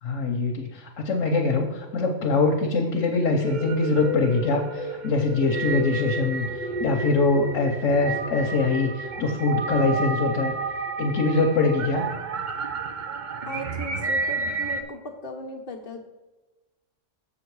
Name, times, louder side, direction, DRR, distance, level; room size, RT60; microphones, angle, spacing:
voice 1, 0.0-10.5 11.0-12.1, left 3 dB, 85° left, 1 dB, 1.2 m, -23 dB
sound 1, 3.4-14.8, right 3 dB, 45° right, 0.7 m, -31 dB
voice 2, 13.5-16.0, equal, 50° left, 1 dB, 1.2 m, -37 dB
7.3 x 6.3 x 4.6 m, 1.1 s
omnidirectional pair, 1.3 m